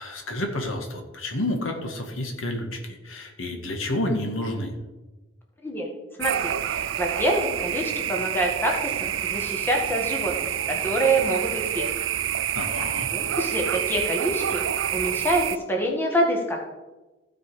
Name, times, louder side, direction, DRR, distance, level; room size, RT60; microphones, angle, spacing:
voice 1, 0.0-4.7 12.5-13.1, left 1 dB, 85° left, 3 dB, 1.8 m, -30 dB
voice 2, 6.2-10.3 10.7-11.9 12.5-14.6 14.9-16.7, right 1 dB, 10° left, 0 dB, 1.7 m, -26 dB
sound 1, 6.2-15.6, right 10 dB, 75° right, 0.5 m, -28 dB
15.5 x 5.3 x 4.9 m, 1.1 s
head